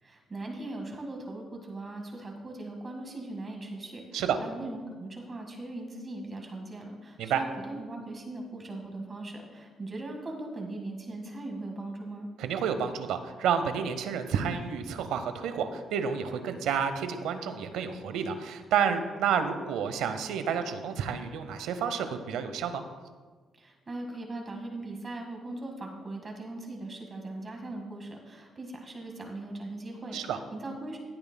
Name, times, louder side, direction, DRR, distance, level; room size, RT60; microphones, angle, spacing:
voice 1, 0.0-12.3 23.5-31.0, right 2 dB, 35° right, 2 dB, 1.6 m, -39 dB
voice 2, 12.4-22.8 30.1-30.4, right 7 dB, 90° right, 9 dB, 0.7 m, -30 dB
16.0 x 8.7 x 2.2 m, 1.5 s
cardioid pair, 90°, 0 cm